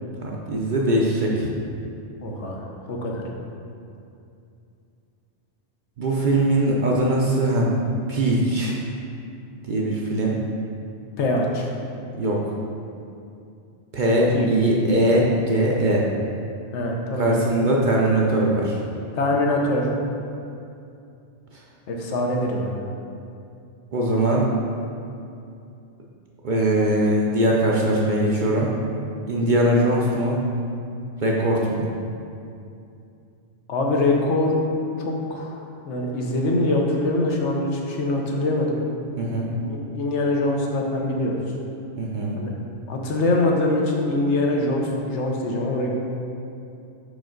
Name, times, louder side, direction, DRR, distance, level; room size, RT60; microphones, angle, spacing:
voice 1, 0.2-1.5 6.0-7.7 8.1-8.8 9.7-10.4 12.2-12.4 13.9-16.1 17.2-18.8 23.9-24.5 26.4-28.7 29.3-30.4 31.2-31.9 39.2-39.5 42.0-42.4, right 1 dB, 50° right, -3 dB, 0.6 m, -21 dB
voice 2, 2.2-3.2 11.2-11.7 14.3-14.5 16.7-17.3 19.1-19.9 21.9-22.8 33.7-34.6 35.0-38.8 40.0-41.4 42.4-42.5 42.9-46.0, left 2 dB, 75° left, 0 dB, 1.0 m, -23 dB
5.2 x 5.0 x 3.8 m, 2.6 s
omnidirectional pair, 1.2 m